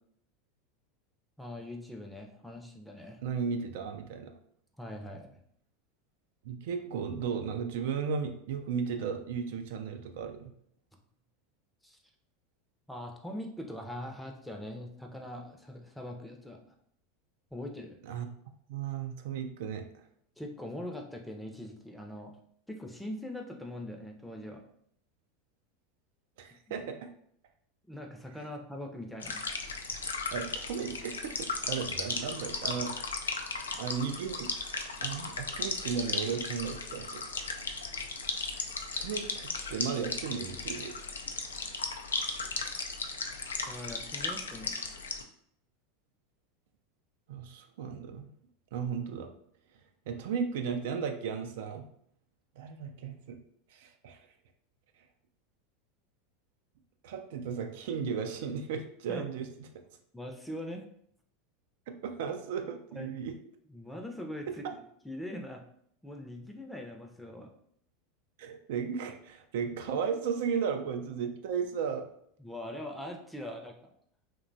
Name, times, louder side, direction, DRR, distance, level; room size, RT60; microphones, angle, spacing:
voice 1, 1.4-3.2 4.8-5.4 11.8-12.0 12.9-16.6 17.5-18.0 20.4-22.4 22.7-24.6 26.7-26.8 27.9-29.4 43.7-44.7 59.1-59.3 60.1-60.9 63.0-63.1 63.7-64.5 65.0-65.6 66.0-67.5 72.4-73.8, left 1 dB, 5° left, 2 dB, 0.5 m, -42 dB
voice 2, 3.2-4.3 6.4-10.5 18.0-18.3 18.7-20.0 26.4-27.1 30.3-33.0 33.8-34.5 35.0-37.2 39.0-41.0 47.3-48.3 48.7-49.3 50.1-51.9 52.6-53.4 53.7-54.3 57.0-59.5 61.9-63.3 64.5-64.7 68.4-72.1, right 6 dB, 65° right, 6 dB, 0.3 m, -35 dB
sound 1, 29.2-45.2, left 4 dB, 85° left, 0.3 m, -36 dB
2.8 x 2.2 x 2.6 m, 0.66 s
hypercardioid pair, 90°, 0 cm